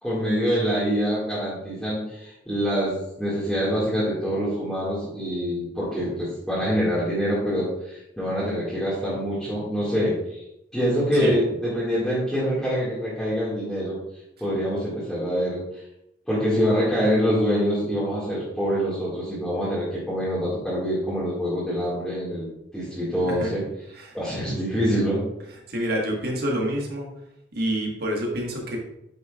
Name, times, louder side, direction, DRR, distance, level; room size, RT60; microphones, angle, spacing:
voice 1, 0.0-10.4 10.7-14.0 14.4-15.6 16.3-23.6 24.1-25.2, equal, ahead, -11 dB, 2.1 m, -25 dB
voice 2, 25.7-27.1 27.5-28.8, equal, 55° right, -1 dB, 1.7 m, -27 dB
9.2 x 6.4 x 2.5 m, 0.85 s
head